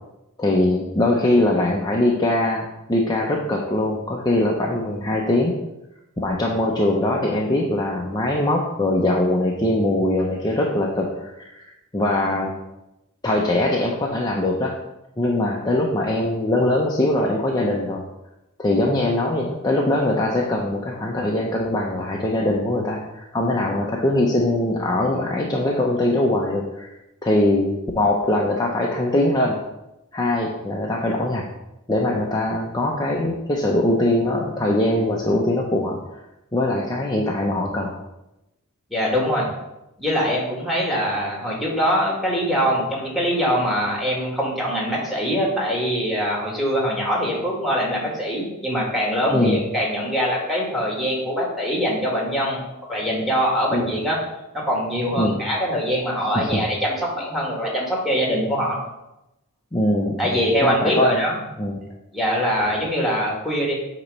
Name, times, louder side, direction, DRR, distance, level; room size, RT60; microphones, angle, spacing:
voice 1, 0.4-5.6 6.2-11.6 11.9-12.5 13.2-14.8 15.2-18.0 18.6-26.9 27.2-29.6 30.1-31.5 31.9-36.2 36.5-37.9 49.3-49.6 53.7-53.9 55.2-55.4 56.4-56.7 59.7-61.2 61.6-61.8, left 1 dB, 20° left, -2 dB, 0.6 m, -22 dB
voice 2, 38.9-39.5 40.0-52.6 52.9-54.2 54.5-58.8 60.2-61.4 62.1-63.7, equal, ahead, -3 dB, 1.8 m, -23 dB
8.5 x 3.0 x 5.3 m, 0.92 s
head